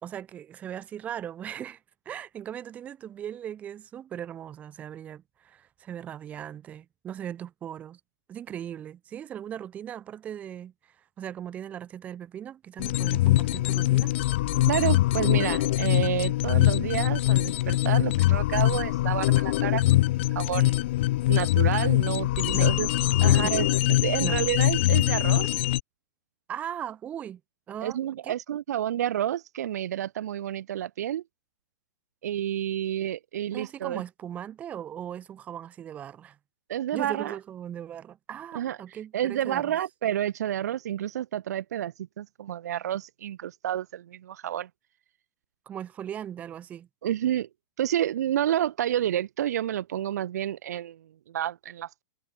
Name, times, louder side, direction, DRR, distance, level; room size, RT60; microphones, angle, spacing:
voice 1, 0.0-1.8 2.1-8.0 8.3-14.1 22.5-22.8 23.2-23.5 24.2-24.4 26.5-27.4 27.7-28.0 28.2-28.3 33.5-36.4 36.9-39.8 45.7-46.9, right 10 dB, 15° right, 2.6 m, -38 dB
sound 1, 12.8-25.8, left 16 dB, 40° left, 0.4 m, -23 dB
voice 2, 14.7-20.8 21.3-22.9 23.2-23.7 24.0-25.5 27.8-31.2 32.2-34.0 36.7-37.4 38.5-38.8 39.1-44.7 47.0-47.5 47.8-52.0, right 11 dB, 60° right, 2.2 m, -29 dB
supercardioid pair, 175°, 10 cm